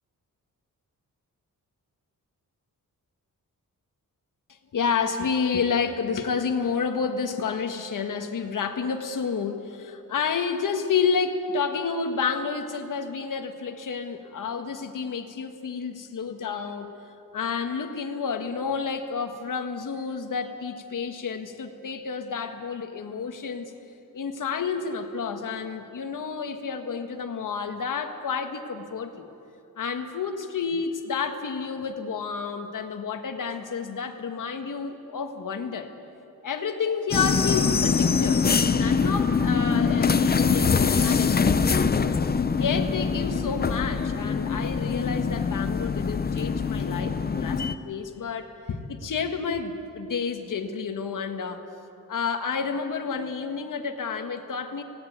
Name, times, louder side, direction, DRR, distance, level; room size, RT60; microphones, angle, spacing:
voice 1, 4.7-16.9 17.3-23.7 24.1-29.3 29.8-35.9 36.4-42.2 42.6-51.6 52.1-54.8, left 5 dB, 65° left, 6 dB, 1.6 m, -30 dB
sound 1, 37.1-47.7, left 5 dB, 30° left, 0.6 m, -23 dB
17.5 x 17.0 x 9.4 m, 2.7 s
wide cardioid pair, 135°, 34 cm